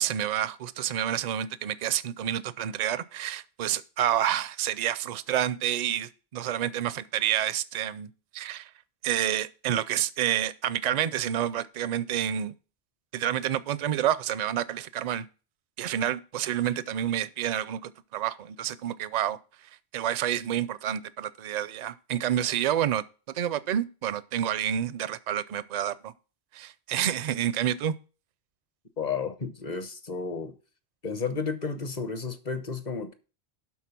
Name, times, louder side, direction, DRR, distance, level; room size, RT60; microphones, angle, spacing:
voice 1, 0.0-8.1 8.3-8.7 9.0-12.5 13.1-15.3 15.8-19.4 19.9-23.0 23.3-26.1 26.5-27.9, right 11 dB, 55° right, 0.5 m, -29 dB
voice 2, 29.0-30.5 31.0-33.1, left 5 dB, 45° left, 0.9 m, -32 dB
12.0 x 4.1 x 5.8 m
omnidirectional pair, 1.1 m